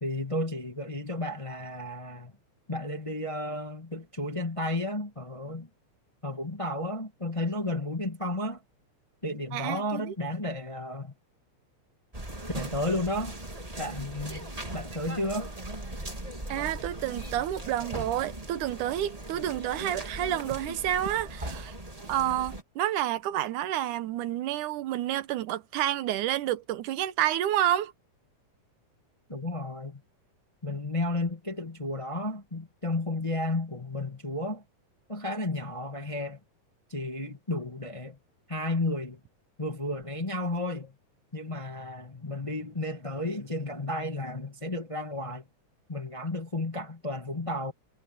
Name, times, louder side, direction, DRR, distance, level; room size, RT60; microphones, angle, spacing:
voice 1, 0.0-2.3 2.7-5.7 6.2-8.6 9.2-11.1 12.5-13.4 13.8-15.5 29.3-30.0 30.6-34.6 35.1-36.4 36.9-38.2 38.5-39.2 39.6-40.9 41.3-45.5 45.9-47.7, left 1 dB, 15° left, 1.1 m, -32 dB
voice 2, 9.5-10.1 16.5-21.7 22.1-27.9, right 12 dB, 90° right, 2.5 m, -29 dB
sound 1, 12.1-22.6, right 1 dB, 10° right, 2.6 m, -39 dB
omnidirectional pair, 3.5 m